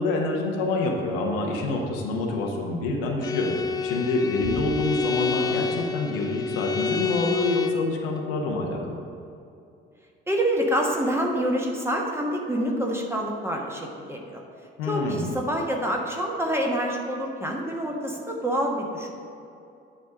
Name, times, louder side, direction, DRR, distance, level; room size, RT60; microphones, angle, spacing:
voice 1, 0.0-9.0 14.8-15.3, left 2 dB, 70° left, 0 dB, 1.0 m, -27 dB
Bowed string instrument, 3.2-7.9, left 5 dB, 15° left, 0.3 m, -28 dB
voice 2, 10.3-14.4 14.8-19.1, equal, 10° right, 0 dB, 1.2 m, -27 dB
9.8 x 3.4 x 6.4 m, 2.6 s
figure-of-eight pair, 45°, 30 cm